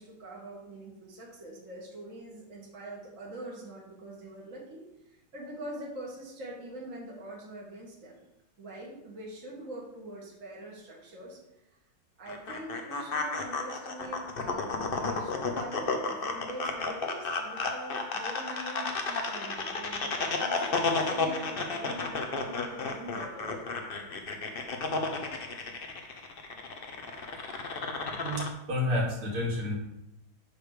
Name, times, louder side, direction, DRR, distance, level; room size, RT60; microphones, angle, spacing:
voice 1, 0.0-4.8 5.3-8.2 8.6-11.4 12.2-23.6, right 1 dB, 40° right, -3 dB, 2.1 m, -43 dB
sound 1, 12.3-28.5, left 3 dB, 80° left, 0.5 m, -33 dB
voice 2, 28.2-29.8, left 1 dB, 80° right, -4 dB, 3.2 m, -30 dB
9.6 x 3.4 x 6.6 m, 0.88 s
omnidirectional pair, 2.3 m